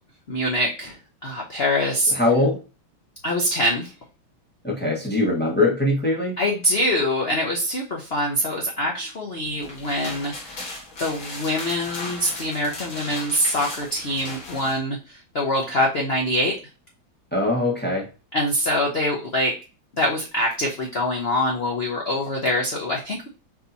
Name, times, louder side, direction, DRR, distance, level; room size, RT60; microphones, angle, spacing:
voice 1, 0.3-2.1 3.2-3.9 6.4-10.7 11.0-16.6 18.3-19.5 20.0-23.3, left 1 dB, 85° left, -1 dB, 0.5 m, -24 dB
voice 2, 2.1-2.6 4.6-6.4 17.3-18.1, left 2 dB, 15° left, -2 dB, 0.3 m, -22 dB
sound 1, 9.5-14.8, left 2 dB, 50° left, 1.8 m, -36 dB
4.6 x 2.9 x 4.0 m, 0.31 s
omnidirectional pair, 2.3 m